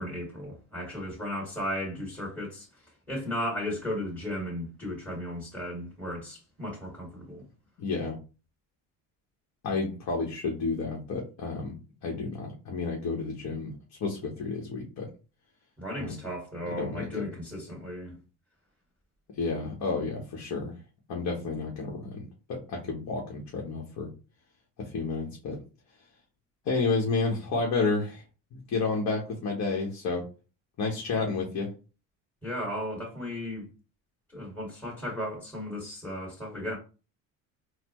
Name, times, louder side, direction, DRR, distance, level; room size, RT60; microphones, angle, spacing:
voice 1, 0.0-2.7 3.1-7.4 15.8-18.2 32.4-33.7 34.3-36.8, left 1 dB, 5° left, 1.9 m, -35 dB
voice 2, 7.8-8.2 9.6-11.8 12.0-13.7 14.0-15.1 16.0-16.2 16.8-17.3 19.4-20.7 21.1-24.1 24.8-25.6 26.6-28.2 28.5-30.3 30.8-31.7, left 4 dB, 45° left, 1.0 m, -31 dB
4.1 x 2.1 x 2.9 m
supercardioid pair, 95°, 38 cm